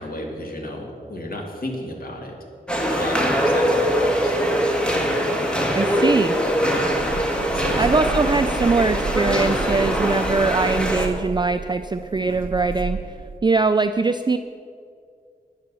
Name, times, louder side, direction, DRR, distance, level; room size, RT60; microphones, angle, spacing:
voice 1, 0.0-2.3 2.9-4.3 6.6-6.9 7.3-7.9, left 1 dB, 65° left, 0 dB, 2.4 m, -33 dB
sound 1, 2.7-11.1, equal, 5° left, 1.6 m, -22 dB
voice 2, 5.7-6.4 7.8-13.0 13.4-14.4, right 3 dB, 30° right, 9 dB, 0.4 m, -21 dB
sound 2, 6.5-13.4, right 4 dB, 60° right, 0.8 m, -32 dB
10.5 x 9.8 x 6.9 m, 2.3 s
wide cardioid pair, 95°, 16 cm